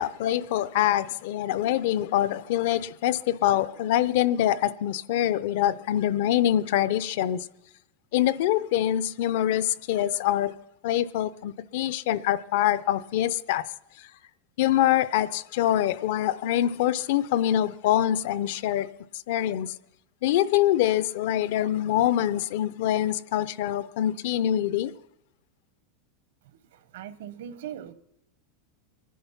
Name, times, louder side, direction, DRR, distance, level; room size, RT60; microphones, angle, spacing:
voice 1, 0.0-7.5 8.1-10.5 10.8-13.6 14.0-14.1 14.6-19.7 20.2-24.9, left 12 dB, 55° left, 0.5 m, -25 dB
voice 2, 26.4-27.9, right 10 dB, 70° right, 0.9 m, -41 dB
23.5 x 10.0 x 5.7 m
supercardioid pair, 175°, 0 cm